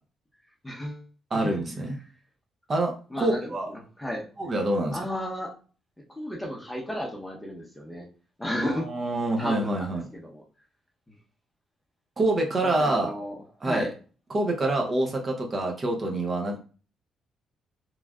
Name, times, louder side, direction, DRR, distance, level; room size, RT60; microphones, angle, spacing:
voice 1, 0.6-1.1 1.3-1.6 3.1-4.3 4.9-5.5 6.1-8.1 8.4-8.9 9.4-10.4 11.1-11.2 12.6-13.9, left 1 dB, 5° left, 0 dB, 0.8 m, -33 dB
voice 2, 1.3-1.9 2.7-3.7 4.4-5.0 8.6-10.0 12.2-13.1 13.6-13.9 14.3-16.6, right 2 dB, 35° right, 2 dB, 0.7 m, -26 dB
3.1 x 2.4 x 2.3 m, 0.36 s
cardioid pair, 90°, 0 cm